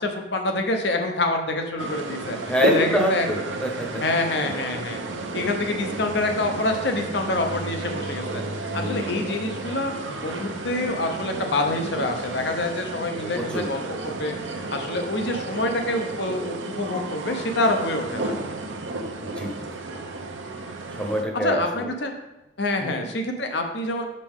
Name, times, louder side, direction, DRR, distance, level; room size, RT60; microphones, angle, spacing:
voice 1, 0.0-3.3 4.0-5.0 5.3-8.4 8.7-18.3 19.3-19.4 21.4-22.1 22.6-24.0, left 2 dB, 65° left, 4 dB, 0.8 m, -26 dB
sound 1, 1.8-21.2, right 2 dB, 85° right, 0.7 m, -32 dB
voice 2, 2.4-4.0 8.7-9.3 13.4-13.7 19.2-19.5 20.9-21.9 22.8-23.1, equal, 5° left, 1 dB, 0.8 m, -26 dB
6.3 x 5.3 x 3.6 m, 0.97 s
head